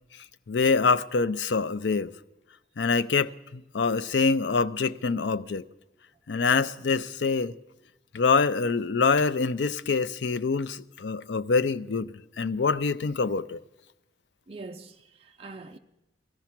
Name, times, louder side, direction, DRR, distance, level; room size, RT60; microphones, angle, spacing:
voice 1, 0.5-2.1 2.8-5.6 6.3-7.5 8.1-13.6, left 4 dB, 85° left, 0.5 m, -25 dB
voice 2, 14.5-15.8, right 3 dB, 35° right, 0.5 m, -43 dB
17.0 x 14.0 x 5.9 m
head